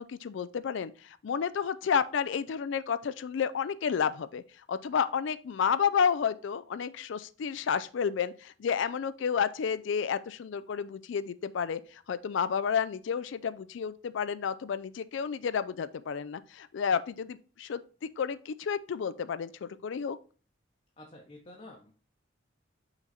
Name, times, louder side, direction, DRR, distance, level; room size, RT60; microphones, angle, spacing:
voice 1, 0.0-4.4 4.7-17.8 18.2-20.2, left 7 dB, 65° left, 0.4 m, -31 dB
voice 2, 21.0-21.9, left 1 dB, 35° left, 0.9 m, -49 dB
5.9 x 3.8 x 4.2 m
head